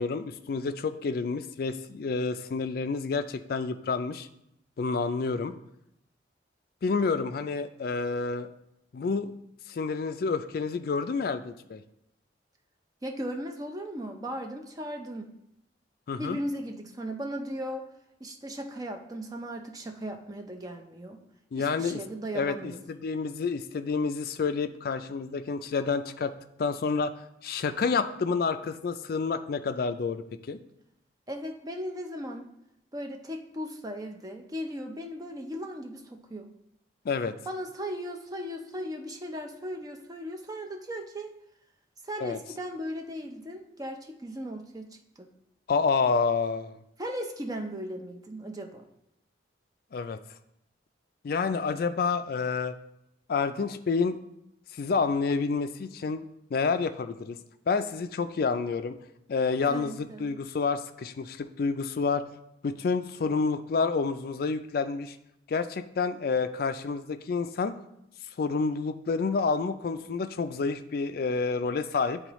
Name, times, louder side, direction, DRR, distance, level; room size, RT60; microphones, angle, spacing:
voice 1, 0.0-4.3 4.8-5.5 6.8-8.5 8.9-9.3 9.7-11.8 16.1-16.4 21.5-22.0 22.3-26.3 26.6-30.6 37.0-37.4 42.2-42.4 45.7-46.8 49.9-50.2 51.2-52.8 53.3-54.2 54.7-56.2 56.5-57.4 57.7-59.0 59.3-62.2 62.6-65.2 65.5-67.7 68.4-72.2, left 4 dB, 50° left, 10 dB, 0.3 m, -29 dB
voice 2, 13.0-15.3 16.2-17.8 18.2-21.2 21.6-22.8 31.3-32.5 32.9-36.5 37.5-41.4 42.0-45.3 47.0-48.8 59.7-60.4, equal, 20° right, 4 dB, 0.5 m, -37 dB
9.5 x 3.8 x 3.0 m, 0.81 s
head